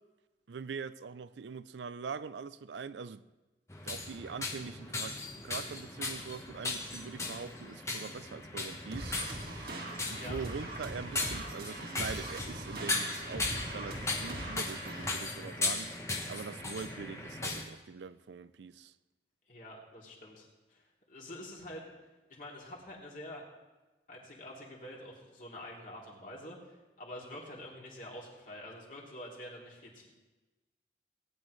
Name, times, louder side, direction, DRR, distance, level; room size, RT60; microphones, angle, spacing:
voice 1, 0.5-3.2 3.8-9.1 10.1-16.0 16.3-18.9, right 5 dB, 90° right, 0.5 m, -43 dB
sound 1, 3.7-17.6, left 2 dB, 15° left, 1.1 m, -38 dB
sound 2, 8.9-15.1, right 1 dB, 60° right, 1.7 m, -41 dB
voice 2, 19.5-21.9 22.3-23.4 24.1-30.1, left 1 dB, 45° left, 2.9 m, -47 dB
18.0 x 9.9 x 3.2 m
head